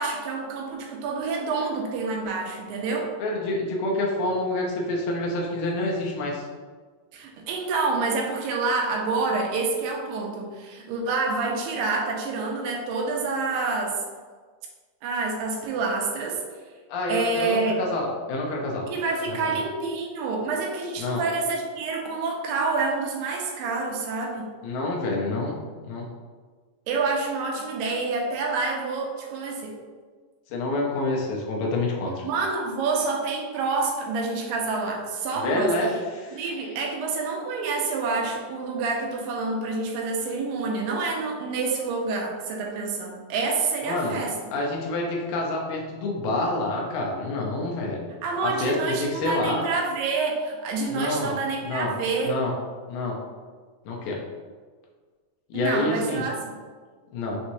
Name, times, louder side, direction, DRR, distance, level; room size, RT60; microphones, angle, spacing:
voice 1, 0.0-3.1 7.1-14.0 15.0-16.4 17.1-17.8 18.9-24.5 26.9-29.7 32.2-35.7 36.3-44.3 48.2-52.3 55.5-56.5, right 4 dB, 80° right, 0 dB, 2.4 m, -27 dB
voice 2, 3.2-6.5 16.9-18.9 19.3-19.6 21.0-21.2 24.6-25.6 25.8-26.1 30.5-32.2 35.4-36.8 43.8-44.2 44.5-48.1 48.4-49.7 50.9-51.4 51.6-51.9 52.2-52.5 52.9-53.2 53.9-54.2 55.5-56.3 57.1-57.4, left 2 dB, 80° left, -2 dB, 2.3 m, -27 dB
6.0 x 2.9 x 2.6 m, 1.5 s
omnidirectional pair, 4.0 m